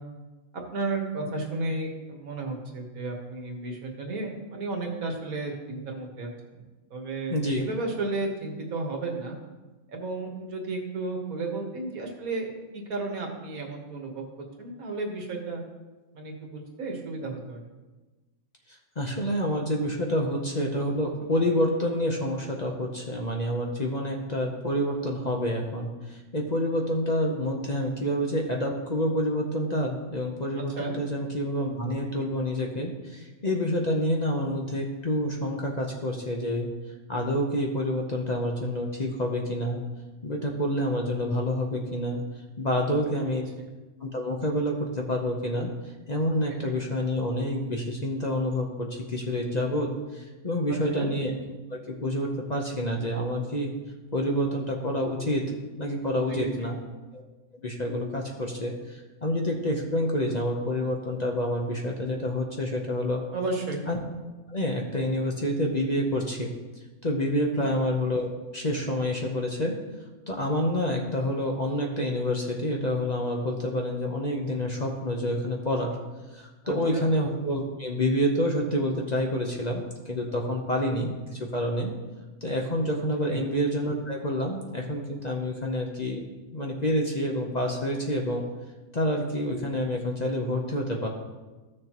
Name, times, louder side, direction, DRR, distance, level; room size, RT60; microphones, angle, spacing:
voice 1, 0.5-6.3 6.9-9.4 9.9-14.2 14.6-15.6 16.1-17.6 30.8-31.0 43.6-43.7 50.9-51.1 56.3-56.8 63.3-63.8 67.5-67.7 76.6-77.1 83.3-83.4, right 3 dB, 80° right, 2 dB, 1.8 m, -33 dB
voice 2, 7.3-7.7 18.7-36.7 37.1-39.8 40.2-42.2 42.6-43.4 44.0-45.7 46.1-51.3 51.7-53.7 54.1-55.5 55.8-56.8 57.1-57.2 57.6-63.2 63.9-64.0 64.5-66.5 67.0-68.3 68.5-69.7 70.3-75.9 76.3-79.8 80.1-81.9 82.4-86.2 86.5-88.5 88.9-91.1, equal, 35° left, 0 dB, 0.8 m, -28 dB
14.5 x 6.5 x 3.0 m, 1.2 s
omnidirectional pair, 1.5 m